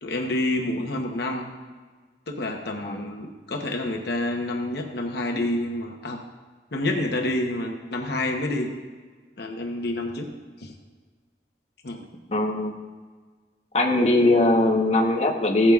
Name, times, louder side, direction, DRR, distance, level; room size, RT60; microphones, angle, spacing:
voice 1, 0.0-1.5 2.3-6.2 6.7-8.7 9.4-10.3 10.6-10.7 11.8-12.0, left 1 dB, 60° left, 2 dB, 0.9 m, -28 dB
voice 2, 12.3-12.7 13.7-15.7, left 1 dB, 35° left, 0 dB, 1.0 m, -20 dB
15.5 x 8.8 x 2.4 m, 1.5 s
head